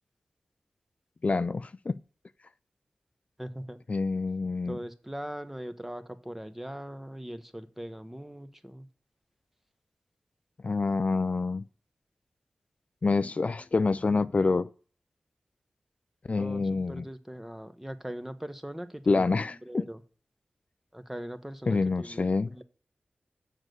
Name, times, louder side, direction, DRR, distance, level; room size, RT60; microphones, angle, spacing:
voice 1, 1.2-2.0 3.9-4.8 10.6-11.6 13.0-14.7 16.3-17.1 19.1-19.9 21.7-22.5, left 3 dB, 45° left, 0.4 m, -27 dB
voice 2, 3.4-3.8 4.6-8.9 16.4-19.3 19.6-20.0 20.9-22.6, equal, 10° right, 1.1 m, -40 dB
7.3 x 6.8 x 7.8 m
wide cardioid pair, 75°, 3 cm